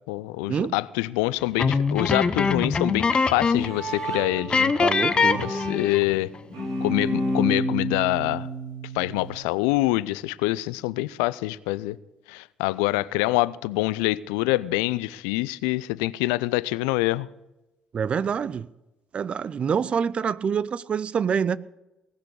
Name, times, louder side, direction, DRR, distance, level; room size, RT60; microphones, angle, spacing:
voice 1, 0.1-4.7 5.4-6.3 6.8-8.5 8.9-12.0 12.3-17.3, left 19 dB, 75° left, 0.4 m, -25 dB
sound 1, 1.6-3.8 4.0-4.2 4.5-6.1, left 5 dB, 35° left, 1.0 m, -23 dB
Bowed string instrument, 3.2-9.3, equal, 75° right, 4.1 m, -31 dB
voice 2, 4.8-5.5 17.9-18.7 19.1-21.6, right 7 dB, 45° right, 0.6 m, -26 dB
19.0 x 6.7 x 8.3 m
figure-of-eight pair, 50°, 3 cm